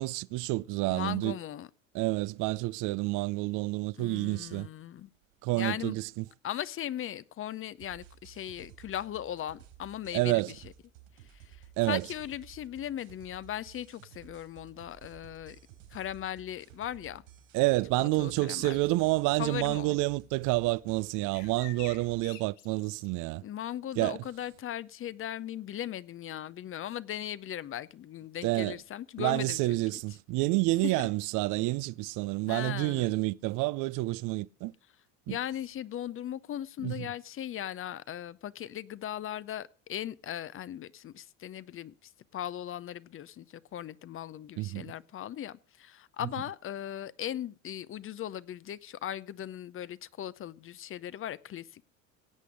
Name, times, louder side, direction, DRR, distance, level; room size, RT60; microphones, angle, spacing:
voice 1, 0.0-1.4 1.9-4.7 5.4-6.2 10.1-10.5 11.8-12.0 17.5-23.4 24.0-24.2 28.4-28.8 29.2-34.7 35.3-35.4 36.8-37.1 44.6-44.9, right 21 dB, 55° right, 0.5 m, -29 dB
voice 2, 0.9-1.7 4.0-5.1 5.5-5.9 6.4-10.6 11.9-15.6 15.9-17.2 18.0-18.8 19.4-20.0 23.4-30.0 30.8-31.1 32.5-33.1 35.3-41.9 42.3-51.8, left 11 dB, 35° left, 0.6 m, -38 dB
sound 1, 7.8-22.2, right 11 dB, 75° right, 4.3 m, -55 dB
sound 2, 18.6-19.2 21.3-23.1, left 11 dB, 65° left, 1.8 m, -49 dB
17.0 x 8.4 x 5.1 m
hypercardioid pair, 70°, 38 cm